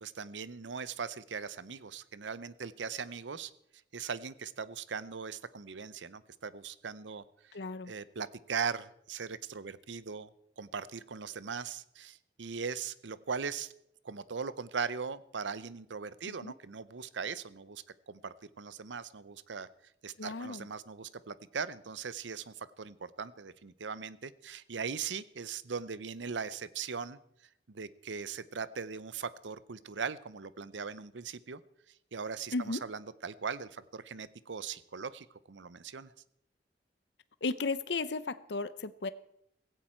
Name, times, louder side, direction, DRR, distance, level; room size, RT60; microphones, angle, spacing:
voice 1, 0.0-3.5 3.9-7.6 7.8-10.3 10.6-13.7 14.0-19.7 20.0-27.2 27.7-31.6 32.1-36.1, right 5 dB, 90° right, 16 dB, 0.7 m, -39 dB
voice 2, 7.5-7.9 16.3-16.5 20.2-20.7 32.5-32.8 37.4-39.1, left 3 dB, 75° left, 15 dB, 0.7 m, -35 dB
16.0 x 16.0 x 4.5 m, 0.76 s
head